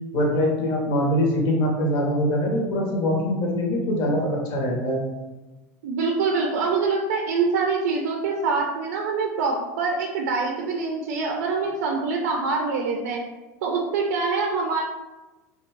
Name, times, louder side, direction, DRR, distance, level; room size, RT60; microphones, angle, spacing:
voice 1, 0.1-5.0, equal, 50° left, 0 dB, 0.8 m, -23 dB
voice 2, 5.8-13.2 13.6-14.8, right 4 dB, 75° right, 1 dB, 0.4 m, -25 dB
2.5 x 2.3 x 3.1 m, 1.1 s
supercardioid pair, 110°, 9 cm